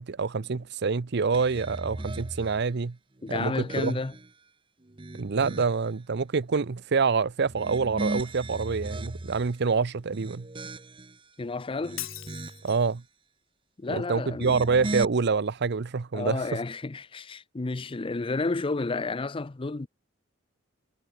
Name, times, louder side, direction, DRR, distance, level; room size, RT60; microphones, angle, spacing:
voice 1, 0.0-3.0 3.3-4.0 5.1-10.5 12.6-13.0 13.9-16.4, right 5 dB, 60° right, 0.6 m, -26 dB
sound 1, 1.3-2.6 3.2-4.3 4.8-5.9 7.4-9.5 10.0-11.2 11.7-12.8 14.3-15.0, right 2 dB, 25° right, 0.9 m, -37 dB
voice 2, 3.2-4.1 11.4-12.0 13.8-14.7 16.1-19.9, left 3 dB, 25° left, 0.5 m, -31 dB
Shatter, 12.0-13.0, left 16 dB, 85° left, 2.1 m, -39 dB
head